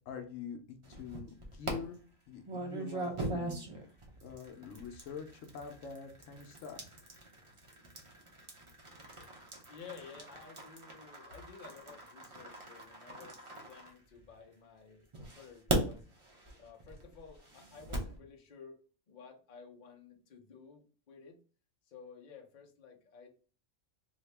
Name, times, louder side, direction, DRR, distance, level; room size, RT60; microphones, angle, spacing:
voice 1, 0.1-2.0 2.3-3.7 4.2-7.0, left 6 dB, 75° left, 5 dB, 1.0 m, -45 dB
sound 1, 0.8-1.7 2.4-14.5 15.1-18.2, right 2 dB, 30° right, 0.6 m, -41 dB
voice 2, 9.7-16.1 16.6-21.4 21.8-23.3, left 6 dB, 45° left, 1 dB, 0.7 m, -53 dB
2.8 x 2.7 x 3.2 m, 0.39 s
omnidirectional pair, 1.4 m